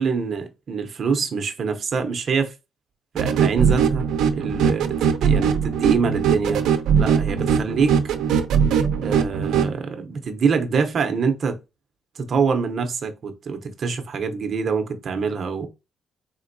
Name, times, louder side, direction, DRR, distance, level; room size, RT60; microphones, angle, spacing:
voice 1, 0.0-2.5 3.1-4.1 4.3-6.6 7.0-8.1 9.0-11.6 12.2-15.7, right 5 dB, 40° right, 0.7 m, -25 dB
sound 1, 3.2-9.7, right 7 dB, 85° right, 0.5 m, -20 dB
4.3 x 3.7 x 2.6 m
cardioid pair, 155°, 0 cm